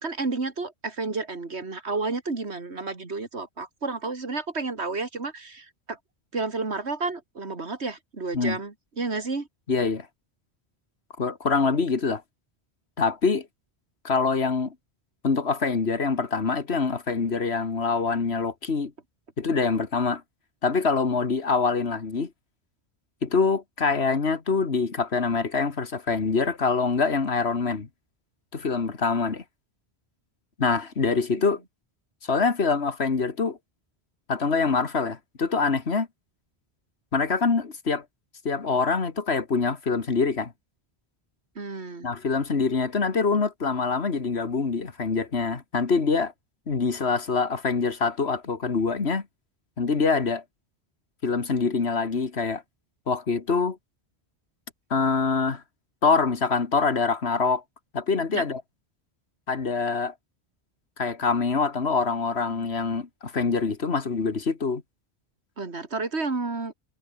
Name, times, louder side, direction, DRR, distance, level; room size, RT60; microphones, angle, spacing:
voice 1, 0.0-6.0 6.3-9.5 31.3-31.4 41.6-42.1 58.3-58.4 65.6-66.7, right 3 dB, 90° right, 2.9 m, -31 dB
voice 2, 9.7-10.1 11.2-12.2 13.0-13.5 14.0-14.7 15.2-18.9 19.4-20.2 20.6-22.3 23.2-27.9 28.5-29.4 30.6-31.6 32.2-33.6 34.3-36.1 37.1-38.0 38.5-40.5 42.0-46.3 46.7-49.2 49.8-50.4 51.2-52.6 53.1-53.8 54.9-55.6 56.0-57.6 57.9-58.6 59.5-60.1 61.0-64.8, left 4 dB, 75° left, 2.1 m, -25 dB
omnidirectional pair, 1.1 m